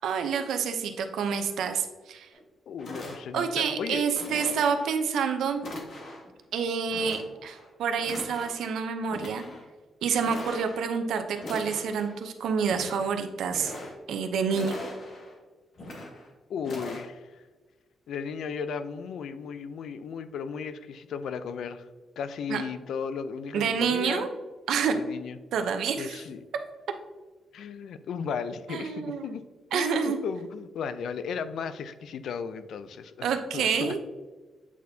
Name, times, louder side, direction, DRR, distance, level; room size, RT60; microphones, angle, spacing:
voice 1, 0.0-2.3 3.3-5.6 6.5-9.4 10.0-13.7 14.1-14.8 22.5-22.6 23.5-24.3 24.7-25.0 25.5-26.2 28.7-29.3 29.7-30.2 33.2-34.0, right 6 dB, 90° right, 7 dB, 0.6 m, -28 dB
sound 1, 2.3-2.4 2.8-3.6 4.1-5.0 5.6-6.3 6.9-7.7 8.0-8.7 9.1-9.6 10.1-10.9 11.4-12.2 12.6-13.1 13.4-14.2 14.5-15.3 15.8-16.3 16.6-17.0, left 1 dB, 50° left, 1.4 m, -41 dB
voice 2, 2.7-4.0 16.5-17.4 18.1-21.8 22.2-24.3 24.9-25.4 26.0-26.5 27.5-29.4 29.7-33.9, left 6 dB, 70° left, 12 dB, 0.4 m, -35 dB
8.3 x 4.3 x 2.7 m, 1.3 s
wide cardioid pair, 165°, 0 cm